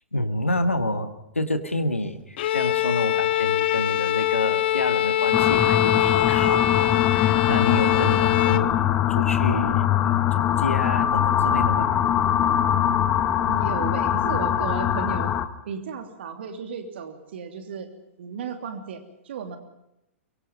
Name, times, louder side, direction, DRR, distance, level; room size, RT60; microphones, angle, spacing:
voice 1, 0.1-11.9, left 1 dB, 90° left, 9 dB, 1.7 m, -29 dB
Bowed string instrument, 2.4-8.7, left 13 dB, 55° left, 1.0 m, -23 dB
sound 1, 5.3-15.5, left 10 dB, 30° left, 1.8 m, -22 dB
voice 2, 13.5-15.3 15.6-17.9 18.2-19.6, right 6 dB, 60° right, 6 dB, 3.1 m, -34 dB
24.0 x 23.5 x 5.4 m, 0.85 s
figure-of-eight pair, 105°, 7 cm